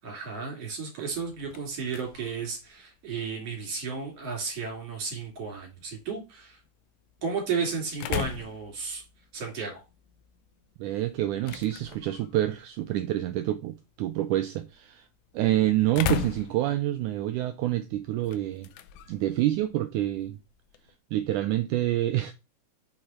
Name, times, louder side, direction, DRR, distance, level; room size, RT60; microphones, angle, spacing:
voice 1, 0.0-6.6 7.2-9.0 9.3-9.8, right 5 dB, 45° right, 3.6 m, -33 dB
sound 1, 1.1-21.0, left 9 dB, 80° left, 1.8 m, -41 dB
voice 2, 10.8-15.1 15.3-18.7 19.1-20.4 21.1-22.3, right 14 dB, 80° right, 1.8 m, -27 dB
6.5 x 4.7 x 4.2 m
omnidirectional pair, 4.0 m